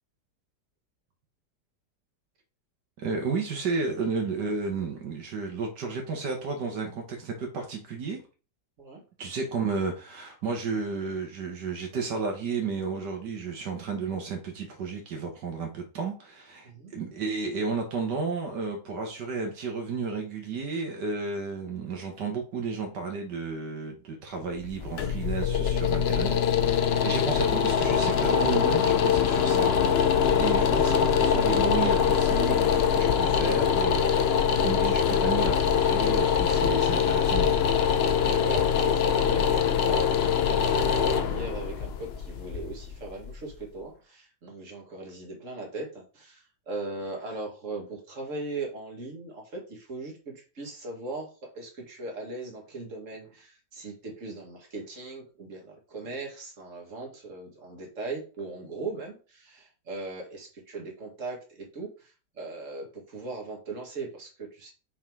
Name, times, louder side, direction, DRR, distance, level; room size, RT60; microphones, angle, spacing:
voice 1, 3.0-8.2 9.2-29.7 30.2-37.7, right 4 dB, 80° right, 2 dB, 1.8 m, -32 dB
sound 1, 24.6-43.5, left 7 dB, 70° left, 0.5 m, -23 dB
voice 2, 38.4-51.3 51.5-64.7, right 3 dB, 50° right, 0 dB, 2.2 m, -39 dB
6.5 x 3.8 x 4.7 m, 0.36 s
omnidirectional pair, 1.8 m